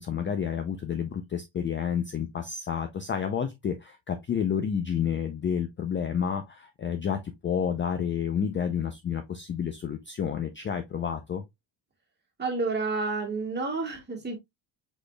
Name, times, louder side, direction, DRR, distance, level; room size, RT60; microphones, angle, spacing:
voice 1, 0.0-11.4, left 7 dB, 25° left, 0.4 m, -30 dB
voice 2, 12.4-14.4, right 3 dB, 20° right, 1.8 m, -30 dB
5.0 x 4.0 x 2.2 m
cardioid pair, 140°, 46 cm